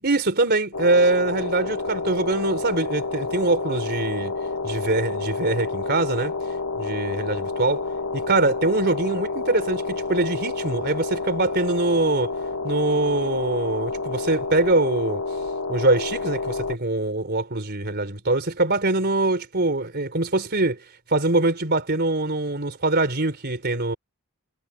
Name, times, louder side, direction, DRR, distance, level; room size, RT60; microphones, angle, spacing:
voice 1, 0.0-4.3 4.6-6.3 6.8-7.8 8.1-12.3 12.6-15.2 15.7-20.8 21.1-24.0, right 2 dB, 45° right, 4.0 m, -23 dB
sound 1, 0.7-16.8, left 3 dB, 80° left, 2.2 m, -29 dB
head